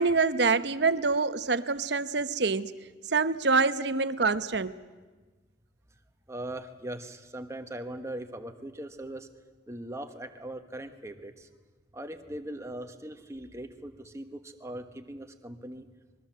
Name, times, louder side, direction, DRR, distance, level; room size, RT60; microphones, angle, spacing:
voice 1, 0.0-2.7 3.1-4.8, right 4 dB, 65° right, 13 dB, 0.9 m, -26 dB
voice 2, 6.3-9.3 9.7-11.5 11.9-15.9, right 1 dB, 15° right, 6 dB, 1.4 m, -40 dB
25.5 x 21.5 x 7.5 m, 1.3 s
head